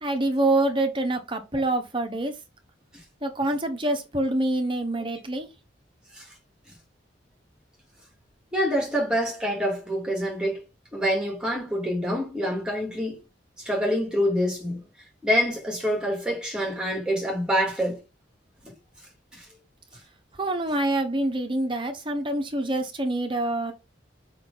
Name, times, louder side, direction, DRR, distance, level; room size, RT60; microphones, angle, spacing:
voice 1, 0.0-2.3 3.2-5.5 20.4-23.7, right 1 dB, 25° right, 1.0 m, -26 dB
voice 2, 8.5-10.6 10.9-13.2 13.6-14.8 15.2-18.0, equal, 5° right, 2.3 m, -26 dB
6.6 x 5.3 x 4.0 m
head